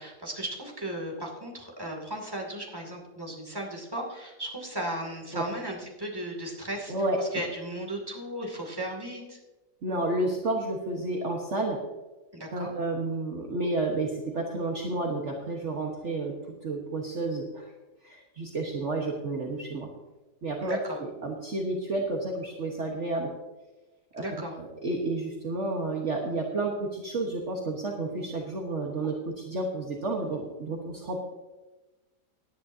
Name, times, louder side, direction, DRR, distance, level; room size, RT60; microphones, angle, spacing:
voice 1, 0.0-9.4 12.3-12.7 20.6-21.0 24.2-24.5, right 1 dB, 15° right, 0 dB, 2.6 m, -36 dB
voice 2, 6.9-7.4 9.8-11.8 12.5-16.3 16.6-17.7 18.0-19.9 20.4-20.8 21.2-23.3 24.1-24.2 24.6-31.3, right 2 dB, 45° right, 0 dB, 1.6 m, -31 dB
18.0 x 10.5 x 2.8 m, 1.1 s
omnidirectional pair, 1.8 m